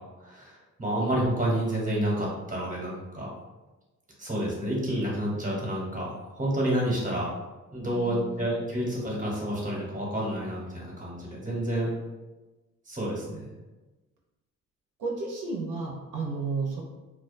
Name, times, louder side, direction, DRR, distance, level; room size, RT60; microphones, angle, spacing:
voice 1, 0.2-3.3 4.2-7.3 7.7-11.9 12.9-13.4, right 1 dB, 25° right, -4 dB, 0.9 m, -29 dB
voice 2, 7.9-8.5 15.0-16.8, right 4 dB, 80° right, -3 dB, 0.6 m, -32 dB
2.3 x 2.2 x 2.5 m, 1.1 s
cardioid pair, 80°, 31 cm